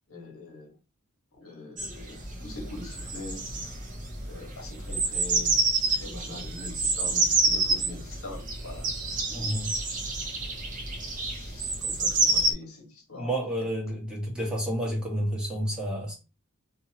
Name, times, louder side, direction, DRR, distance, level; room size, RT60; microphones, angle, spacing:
voice 1, 0.1-0.7 1.3-3.4 4.3-5.6 6.0-8.9 9.2-9.6 11.1-13.3, left 2 dB, 70° left, 1.2 m, -43 dB
sound 1, 1.8-12.5, right 3 dB, 35° right, 0.7 m, -28 dB
voice 2, 9.3-9.8 13.1-16.2, equal, 5° right, 1.1 m, -30 dB
2.7 x 2.6 x 2.8 m
head